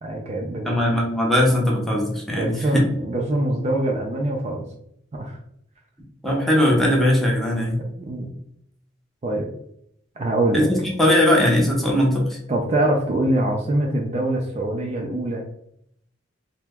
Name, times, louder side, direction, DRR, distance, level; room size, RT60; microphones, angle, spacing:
voice 1, 0.0-0.7 2.3-4.7 5.1-5.4 7.8-8.3 9.2-9.5 10.2-10.7 12.5-15.4, right 1 dB, 35° right, 0 dB, 0.4 m, -24 dB
voice 2, 0.6-2.8 6.2-7.8 10.5-12.4, left 1 dB, ahead, -2 dB, 0.7 m, -19 dB
2.9 x 2.1 x 3.4 m, 0.71 s
head